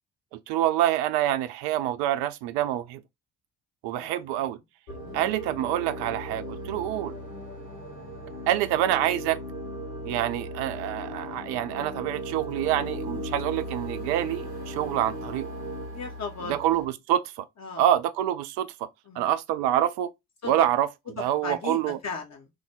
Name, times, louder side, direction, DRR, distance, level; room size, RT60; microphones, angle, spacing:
voice 1, 0.3-3.0 3.8-4.6 5.1-7.1 8.5-9.4 10.1-15.5 16.5-17.4 17.8-18.7 19.2-20.1 20.5-20.9 21.2-22.0, right 12 dB, 55° right, 0.5 m, -26 dB
voice 2, 4.0-4.5 5.0-5.2 15.9-16.6 17.6-17.9 19.1-19.3 20.4-20.6 21.1-22.5, left 4 dB, 35° left, 0.8 m, -37 dB
sound 1, 4.9-16.8, equal, 75° left, 1.4 m, -37 dB
3.2 x 2.1 x 3.4 m
figure-of-eight pair, 40°, 49 cm